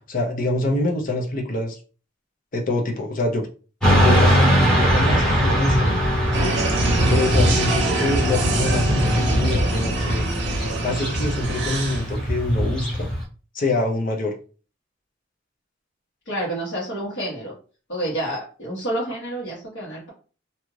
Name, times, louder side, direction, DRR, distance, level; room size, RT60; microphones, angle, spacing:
voice 1, 0.1-1.8 2.5-3.5 3.9-5.9 6.4-6.6 7.1-10.3 10.8-13.1 13.5-14.3, left 2 dB, 45° left, 1 dB, 0.6 m, -25 dB
Motorcycle / Traffic noise roadway noise, 3.8-13.2, equal, 5° left, 0.9 m, -21 dB
sound 1, 6.3-12.1, right 2 dB, 60° right, 0.7 m, -25 dB
voice 2, 16.2-17.5 17.9-20.1, right 1 dB, 65° left, -8 dB, 1.3 m, -29 dB
2.7 x 2.4 x 3.1 m, 0.37 s
head